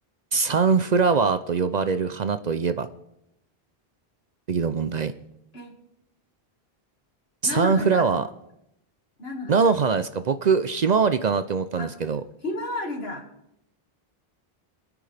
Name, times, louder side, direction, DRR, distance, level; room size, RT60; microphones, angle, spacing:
voice 1, 0.3-2.9 4.5-5.1 7.4-8.3 9.5-12.2, right 5 dB, 50° right, 11 dB, 0.6 m, -22 dB
voice 2, 7.4-8.1 9.2-9.7 11.8-11.9 12.4-13.3, left 2 dB, 80° left, 2 dB, 2.2 m, -32 dB
26.0 x 9.6 x 3.4 m, 0.82 s
omnidirectional pair, 1.0 m